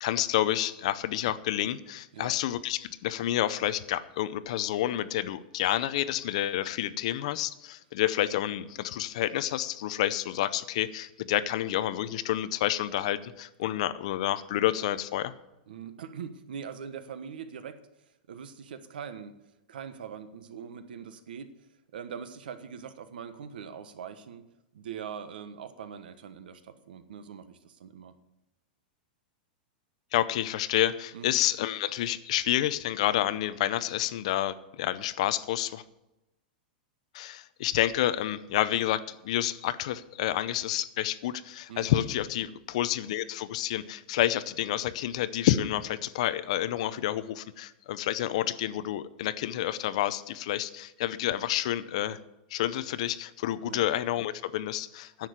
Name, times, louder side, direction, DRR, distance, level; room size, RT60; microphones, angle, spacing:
voice 1, 0.0-15.3 30.1-35.8 37.1-52.2 52.5-55.3, left 13 dB, 45° left, 15 dB, 0.6 m, -29 dB
voice 2, 15.7-19.3 19.7-24.4 24.7-28.1 31.1-31.3 41.7-41.9 53.6-53.8, right 7 dB, 80° right, 11 dB, 1.3 m, -42 dB
10.5 x 7.5 x 8.1 m, 0.93 s
supercardioid pair, 180°, 5 cm